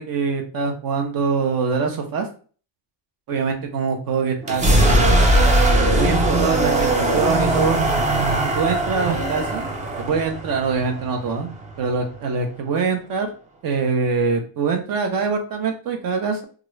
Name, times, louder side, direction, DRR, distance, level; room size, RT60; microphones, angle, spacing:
voice 1, 0.0-2.3 3.3-5.3 5.9-7.8 8.3-9.7 10.0-11.5 11.8-13.3 13.6-16.4, right 5 dB, 45° right, 4 dB, 0.8 m, -24 dB
sound 1, 4.4-12.2, right 1 dB, 15° right, 0.5 m, -20 dB
2.9 x 2.5 x 3.1 m, 0.40 s
cardioid pair, 135°, 47 cm